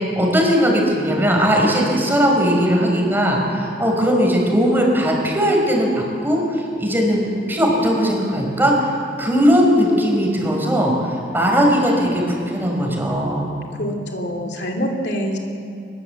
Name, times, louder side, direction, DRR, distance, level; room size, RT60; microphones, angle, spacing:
voice 1, 0.1-8.9 9.2-13.5, equal, 10° right, 0 dB, 4.8 m, -18 dB
voice 2, 13.8-15.4, equal, 65° left, 2 dB, 2.6 m, -25 dB
23.0 x 21.0 x 8.0 m, 2.5 s
head